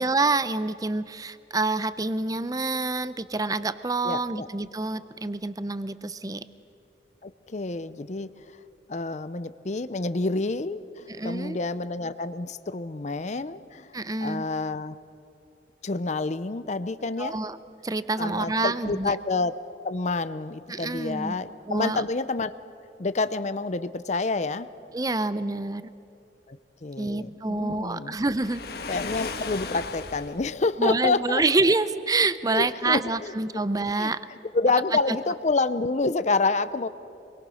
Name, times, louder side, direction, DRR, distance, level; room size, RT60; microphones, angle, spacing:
voice 1, 0.0-6.4 11.2-11.6 13.9-14.4 17.2-17.6 17.8-19.2 20.7-21.3 21.7-22.0 24.9-25.8 27.0-28.6 30.8-34.2, right 3 dB, 20° right, 14 dB, 0.6 m, -27 dB
voice 2, 4.0-4.5 7.2-8.3 8.9-13.9 14.2-15.0 15.8-17.4 18.2-19.5 19.8-22.5 23.0-24.7 26.5-26.6 26.8-28.2 28.9-31.4 32.5-33.6 34.0-34.1 34.5-36.9, left 3 dB, 40° left, 13 dB, 0.6 m, -28 dB
Waves surf, 28.4-30.5, left 4 dB, 60° left, 1.3 m, -35 dB
26.5 x 22.0 x 6.3 m, 2.9 s
head